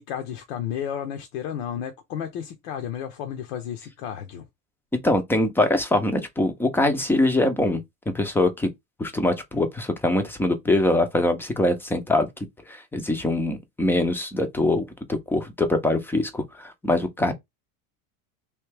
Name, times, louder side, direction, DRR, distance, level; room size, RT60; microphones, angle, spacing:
voice 1, 0.0-4.4, left 9 dB, 70° left, 0.9 m, -32 dB
voice 2, 5.0-7.8 8.1-8.7 9.0-12.3 12.7-17.3, left 2 dB, 5° left, 0.4 m, -23 dB
3.2 x 2.7 x 3.3 m
supercardioid pair, 130°, 43 cm